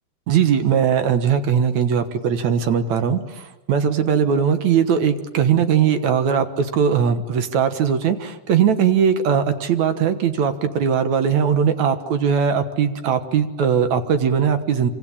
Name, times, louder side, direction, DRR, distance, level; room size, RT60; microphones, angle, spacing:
voice 1, 0.3-14.9, right 7 dB, 60° right, 9 dB, 2.4 m, -19 dB
26.0 x 25.0 x 8.6 m, 1.0 s
omnidirectional pair, 4.0 m